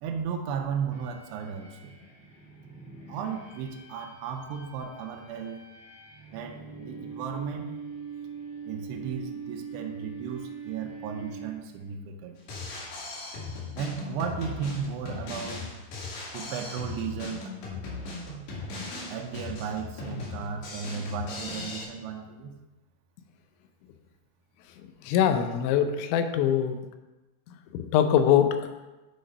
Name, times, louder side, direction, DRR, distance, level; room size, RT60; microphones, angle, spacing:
voice 1, 0.0-1.9 3.1-5.6 6.3-7.8 8.7-12.6 13.8-15.7 16.3-17.5 19.1-22.6, right 6 dB, 80° right, 2 dB, 2.6 m, -35 dB
sound 1, 0.9-12.0, right 5 dB, 25° left, 0.7 m, -43 dB
Drum kit, 12.4-21.8, left 3 dB, 70° left, 4.0 m, -38 dB
voice 2, 25.0-26.8 27.9-28.6, left 9 dB, 85° left, 8 dB, 3.0 m, -22 dB
9.9 x 4.0 x 5.3 m, 1.1 s
omnidirectional pair, 5.3 m